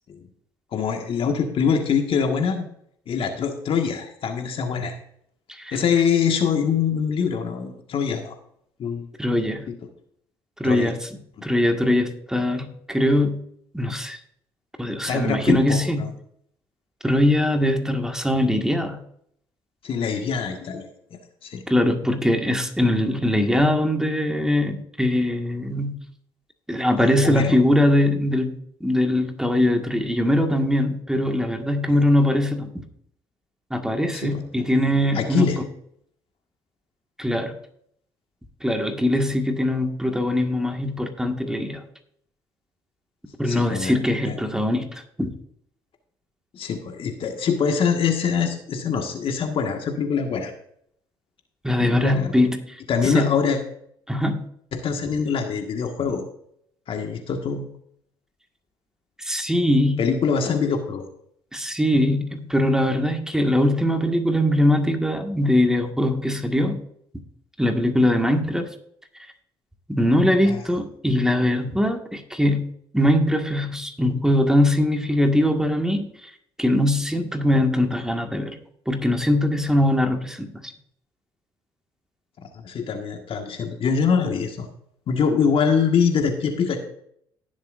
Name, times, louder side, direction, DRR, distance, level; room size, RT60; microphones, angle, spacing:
voice 1, 0.7-2.7 3.1-5.0 5.7-8.4 8.8-9.1 9.7-9.8 10.6-10.9 15.1-16.1 19.8-21.6 27.0-27.6 34.1-34.7 35.1-35.6 43.5-43.9 44.3-44.4 46.5-50.5 51.8-52.3 52.9-53.6 54.7-56.3 56.9-57.8 60.0-61.1 70.4-70.6 82.5-84.7 85.1-86.8, left 6 dB, 55° left, 4 dB, 1.8 m, -24 dB
voice 2, 9.2-9.7 10.6-11.0 11.4-13.4 13.7-14.2 14.8-16.1 17.0-19.0 21.7-26.0 26.7-28.6 28.8-32.7 33.7-35.6 37.2-37.5 38.6-41.8 43.4-45.3 51.6-52.6 53.0-53.3 54.1-54.4 59.2-60.0 61.5-66.8 67.6-68.7 69.9-72.7 72.9-76.1 76.6-78.6 78.9-80.7, left 1 dB, 5° right, 4 dB, 1.8 m, -21 dB
18.0 x 7.3 x 2.6 m, 0.68 s
hypercardioid pair, 55°, 11 cm